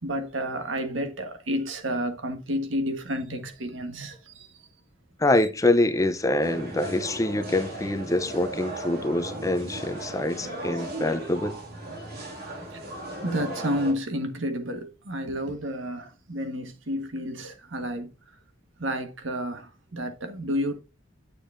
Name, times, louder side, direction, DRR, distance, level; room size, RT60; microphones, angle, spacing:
voice 1, 0.0-4.5 12.1-12.2 12.5-18.1 18.8-20.8, equal, 85° right, 1.4 m, -31 dB
voice 2, 5.2-11.6, left 2 dB, 15° left, 0.6 m, -25 dB
sound 1, 6.4-13.9, right 1 dB, 55° right, 2.3 m, -36 dB
9.1 x 6.9 x 2.6 m
head